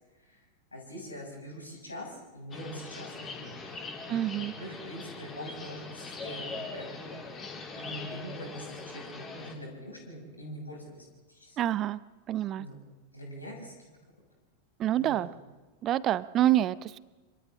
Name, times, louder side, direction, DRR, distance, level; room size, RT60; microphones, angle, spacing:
voice 1, 0.7-3.8 4.6-7.2 7.7-11.6 12.6-12.8 13.1-13.7 15.0-15.3, equal, 80° left, 0 dB, 6.8 m, -43 dB
sound 1, 2.5-9.5, left 3 dB, 25° left, 3.4 m, -41 dB
voice 2, 4.1-4.5 11.6-12.0 12.3-12.7 14.8-15.3 15.8-17.0, right 12 dB, 30° right, 18 dB, 0.7 m, -27 dB
27.0 x 25.5 x 3.8 m, 1.2 s
figure-of-eight pair, 90°, 0 cm